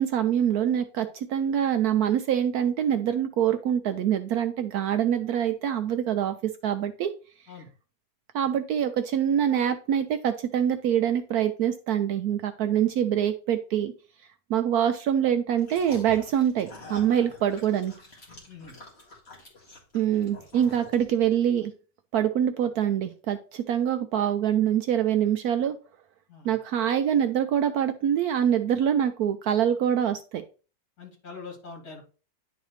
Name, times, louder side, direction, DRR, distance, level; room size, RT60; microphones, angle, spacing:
voice 1, 0.0-7.1 8.3-13.9 14.5-17.9 19.9-21.7 22.1-25.8 26.4-30.4, right 9 dB, 70° right, 8 dB, 1.0 m, -25 dB
sound 1, 15.6-21.3, left 2 dB, 35° left, 2.1 m, -47 dB
voice 2, 31.0-32.0, left 4 dB, 60° left, -1 dB, 3.0 m, -43 dB
10.5 x 4.0 x 3.1 m, 0.35 s
omnidirectional pair, 1.8 m